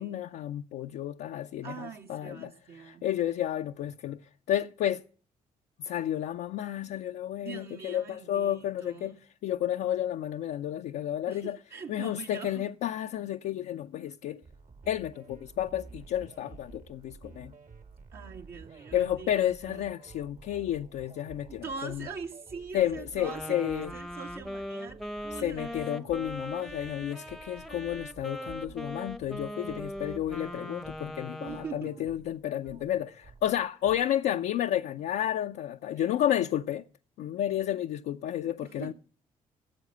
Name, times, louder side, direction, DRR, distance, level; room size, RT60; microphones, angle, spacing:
voice 1, 0.0-2.5 2.8-4.2 4.5-5.0 5.8-9.1 9.4-11.6 11.9-14.4 14.9-17.5 18.9-22.1 22.7-23.9 25.4-36.8 37.2-38.9, left 11 dB, 65° left, 0.6 m, -31 dB
voice 2, 1.6-3.0 7.4-9.2 11.3-12.7 18.1-19.8 21.6-26.1 31.4-32.1 35.9-36.4 38.6-38.9, right 6 dB, 65° right, 2.1 m, -43 dB
sound 1, 14.4-34.1, right 4 dB, 50° right, 1.9 m, -52 dB
Wind instrument woodwind instrument, 23.2-31.8, equal, ahead, 0.9 m, -40 dB
18.0 x 7.9 x 6.8 m
hypercardioid pair, 40°, 17 cm